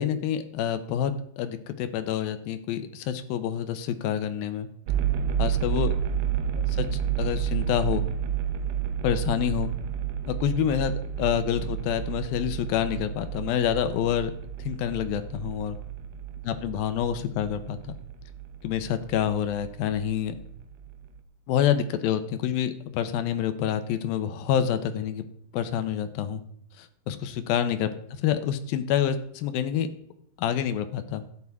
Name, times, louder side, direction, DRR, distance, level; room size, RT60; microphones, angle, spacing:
voice 1, 0.0-4.7 5.4-5.9 6.8-6.9 7.2-8.1 9.0-9.7 10.3-14.3 14.6-15.8 16.4-18.0 18.6-20.3 21.5-25.3 25.5-26.4 26.8-27.9 28.2-29.9 30.4-31.2, left 9 dB, 75° left, 9 dB, 2.5 m, -27 dB
sound 1, 4.9-21.2, right 9 dB, 85° right, 2.8 m, -31 dB
13.5 x 9.7 x 3.6 m, 0.69 s
omnidirectional pair, 4.5 m